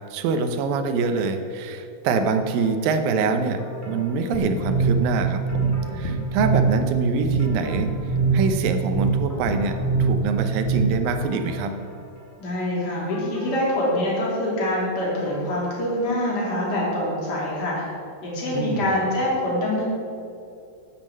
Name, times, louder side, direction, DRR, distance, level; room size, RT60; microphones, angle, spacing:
voice 1, 0.1-7.9 8.3-11.7 18.5-19.0, right 4 dB, 90° right, 7 dB, 2.6 m, -25 dB
sound 1, 2.2-3.0 3.6-5.0 5.5-6.8 7.2-8.8 9.3-10.6 11.2-12.6 13.1-16.4 16.7-16.8, right 2 dB, 5° left, 2.8 m, -39 dB
sound 2, 4.3-11.2, right 4 dB, 85° left, 3.3 m, -24 dB
voice 2, 12.4-17.9 18.2-19.8, left 1 dB, 30° left, -5 dB, 3.3 m, -25 dB
11.0 x 7.5 x 7.5 m, 2.5 s
omnidirectional pair, 3.9 m